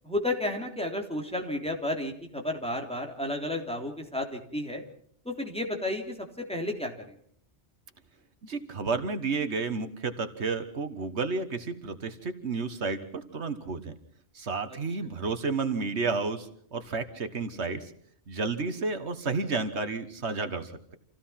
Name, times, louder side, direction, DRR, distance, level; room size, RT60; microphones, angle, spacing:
voice 1, 0.0-4.8 5.2-7.1, left 1 dB, 5° left, 1 dB, 3.4 m, -32 dB
voice 2, 8.4-14.0 14.4-17.9 18.3-21.0, right 4 dB, 80° right, 9 dB, 1.7 m, -31 dB
27.5 x 16.5 x 5.8 m, 0.63 s
omnidirectional pair, 1.1 m